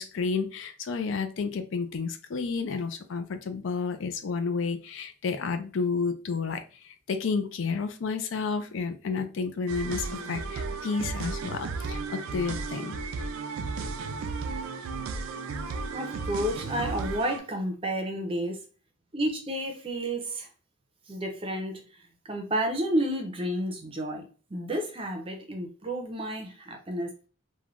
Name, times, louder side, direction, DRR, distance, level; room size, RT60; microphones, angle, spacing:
voice 1, 0.0-13.0, left 5 dB, 65° left, 9 dB, 0.4 m, -31 dB
sound 1, 9.7-17.4, right 4 dB, 85° right, 0.4 m, -34 dB
voice 2, 15.9-18.6 19.1-20.5 21.1-21.8 22.3-24.3 24.5-27.1, right 1 dB, 25° right, 3 dB, 0.5 m, -31 dB
3.1 x 2.2 x 2.4 m, 0.36 s
head